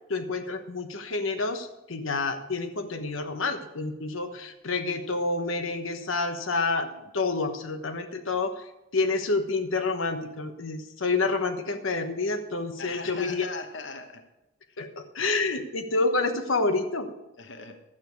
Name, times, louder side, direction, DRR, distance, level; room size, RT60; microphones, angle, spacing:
voice 1, 0.1-6.9 7.1-8.6 8.9-13.5 14.8-17.1, left 3 dB, 85° left, 7 dB, 1.2 m, -28 dB
voice 2, 12.8-14.2 14.7-14.8 17.4-17.8, left 4 dB, 60° left, 6 dB, 1.1 m, -39 dB
12.5 x 9.0 x 4.6 m, 0.94 s
head